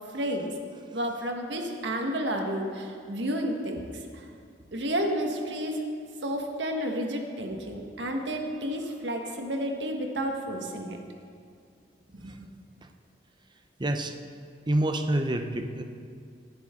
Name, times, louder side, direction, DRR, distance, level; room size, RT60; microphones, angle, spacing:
voice 1, 0.1-0.5 0.9-4.3 4.7-5.8 6.2-11.0 12.1-12.3, equal, 80° right, 2 dB, 1.6 m, -31 dB
voice 2, 13.8-14.1 14.7-15.8, right 1 dB, 25° right, 6 dB, 0.7 m, -27 dB
18.5 x 10.5 x 3.8 m, 2.3 s
head